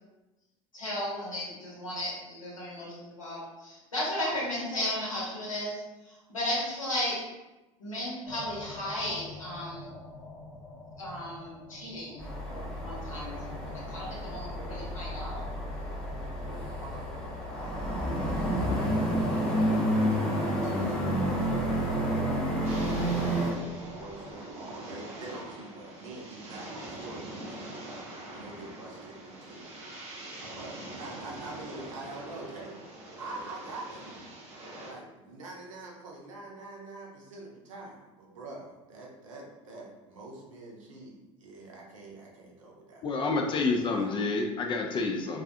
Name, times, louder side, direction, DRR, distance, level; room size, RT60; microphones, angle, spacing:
voice 1, 0.7-5.8 6.1-7.2 7.8-9.9 11.0-12.2 12.5-15.4, left 1 dB, 90° left, -7 dB, 0.9 m, -35 dB
sound 1, 8.3-24.3, left 2 dB, 60° left, 0.7 m, -47 dB
sound 2, 12.2-23.5, equal, 5° left, 0.7 m, -30 dB
voice 2, 16.4-20.1 20.6-22.4 23.3-28.0 28.3-29.7 30.0-30.1 30.5-32.8 33.2-34.2 34.8-43.0 43.9-44.1, right 2 dB, 75° right, -2 dB, 0.6 m, -45 dB
sound 3, 22.6-34.9, right 1 dB, 40° right, 0.8 m, -44 dB
voice 3, 43.0-45.4, left 3 dB, 30° left, 3 dB, 0.4 m, -28 dB
2.3 x 2.3 x 2.6 m, 1.1 s
hypercardioid pair, 75°, 17 cm